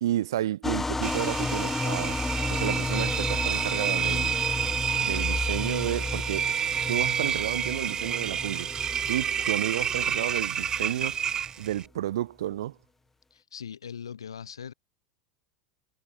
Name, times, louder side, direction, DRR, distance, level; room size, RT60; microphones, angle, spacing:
voice 1, 0.0-2.2 2.5-4.4 4.9-6.5 6.9-8.7 9.1-11.3 11.6-12.8, right 13 dB, 65° right, 1.8 m, -31 dB
sound 1, 0.6-11.5, left 3 dB, 10° left, 1.4 m, -33 dB
Engine, 1.0-11.9, right 8 dB, 25° right, 0.6 m, -29 dB
voice 2, 13.3-14.7, left 7 dB, 70° left, 3.7 m, -40 dB
figure-of-eight pair, 80°, 3 cm